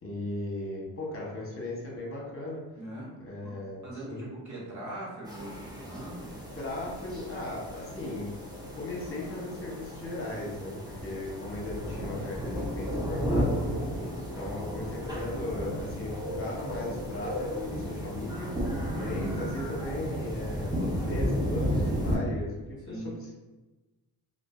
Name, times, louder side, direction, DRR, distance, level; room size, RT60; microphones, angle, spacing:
voice 1, 0.0-2.6 3.2-3.8 4.1-4.3 6.6-8.3 8.8-13.9 14.4-23.0, left 2 dB, 35° left, -3 dB, 0.9 m, -37 dB
voice 2, 2.8-3.6 3.8-6.4 13.8-14.3 22.9-23.2, right 1 dB, 45° right, -5 dB, 1.0 m, -41 dB
sound 1, 5.3-22.2, equal, 10° right, 0.7 m, -33 dB
2.5 x 2.2 x 2.3 m, 1.2 s
cardioid pair, 65°, 41 cm